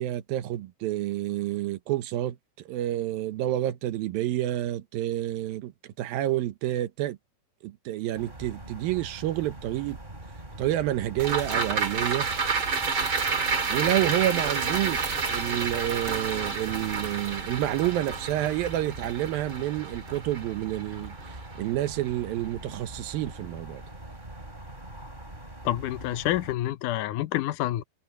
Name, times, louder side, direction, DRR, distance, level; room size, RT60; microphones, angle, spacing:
voice 1, 0.0-2.4 2.7-7.2 7.6-10.0 10.6-12.3 13.7-23.8, right 14 dB, 70° right, 2.5 m, -29 dB
sound 1, 8.1-26.5, right 1 dB, 10° right, 3.9 m, -43 dB
sound 2, 11.2-21.7 22.1-22.2, right 5 dB, 35° right, 2.7 m, -30 dB
voice 2, 25.6-27.8, left 14 dB, 85° left, 1.8 m, -28 dB
omnidirectional pair, 4.8 m